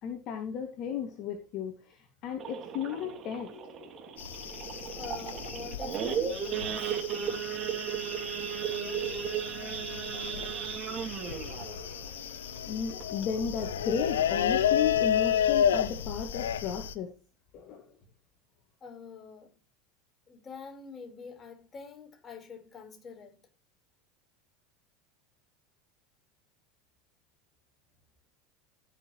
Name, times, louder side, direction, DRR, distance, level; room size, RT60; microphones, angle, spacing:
voice 1, 0.0-4.1 10.4-10.6 10.9-11.6 12.6-17.1 17.5-17.8, left 7 dB, 50° left, 2.4 m, -35 dB
Idling / Accelerating revving vroom / Sawing, 2.4-13.5 13.9-14.1 14.3-14.4 14.9-15.2 15.7-15.8 16.0-16.3, right 8 dB, 40° right, 2.8 m, -36 dB
sound 1, 4.2-16.9, left 9 dB, 85° left, 0.9 m, -32 dB
voice 2, 5.0-7.3 18.8-19.5 20.3-23.4, left 5 dB, 30° left, 4.7 m, -46 dB
16.5 x 6.9 x 3.2 m
hypercardioid pair, 95°, 0 cm